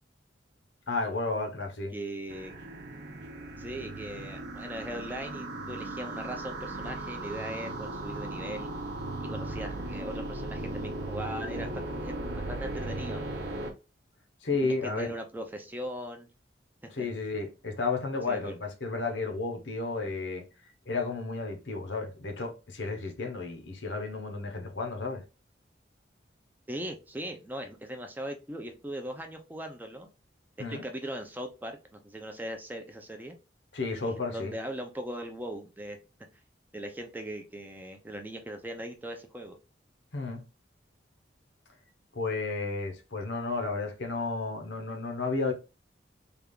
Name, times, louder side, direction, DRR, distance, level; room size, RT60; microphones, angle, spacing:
voice 1, 0.9-1.9 14.4-15.1 16.9-20.4 20.9-25.2 30.6-30.8 33.7-34.5 40.1-40.4 42.1-45.5, left 3 dB, 80° left, 0.9 m, -32 dB
voice 2, 1.9-2.5 3.6-8.7 9.2-13.2 14.6-16.3 17.0-17.1 18.3-18.6 26.7-30.1 30.7-33.4 34.0-36.0 36.7-39.6, right 1 dB, 10° right, 0.4 m, -39 dB
sound 1, 2.3-13.7, right 2 dB, 65° right, 0.7 m, -37 dB
3.4 x 2.4 x 3.5 m
head